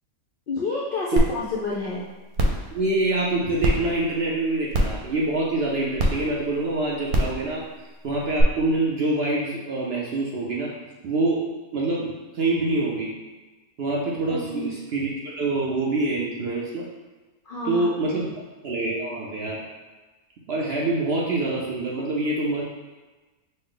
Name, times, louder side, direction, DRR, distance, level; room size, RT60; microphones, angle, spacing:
voice 1, 0.5-2.0 14.3-14.7 17.5-17.9, left 2 dB, 65° left, -4 dB, 0.5 m, -29 dB
sound 1, 1.2-1.3 1.7-1.8 2.3-2.6 3.6-3.7 4.7-5.0 6.0-6.1 7.1-7.3 8.4-8.5, right 1 dB, 90° right, 1.2 m, -20 dB
voice 2, 2.7-7.7 8.0-10.7 11.0-11.4 11.7-13.1 13.8-16.9 17.6-18.3 18.6-19.6 20.5-22.6, right 2 dB, 60° right, -3 dB, 0.7 m, -25 dB
5.4 x 2.0 x 3.7 m, 1.2 s
omnidirectional pair, 1.5 m